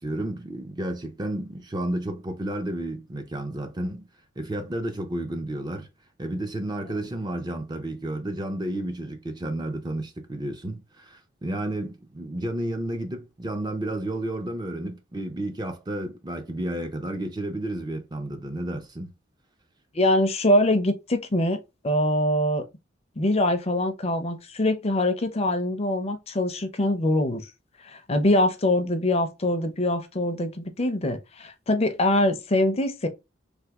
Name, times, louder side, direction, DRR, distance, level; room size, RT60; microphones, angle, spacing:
voice 1, 0.0-4.1 4.4-5.9 6.2-19.1, right 1 dB, 20° right, 0.5 m, -31 dB
voice 2, 19.9-22.6 23.2-27.4 27.8-33.1, left 1 dB, 30° left, 0.6 m, -23 dB
3.4 x 2.7 x 2.9 m
head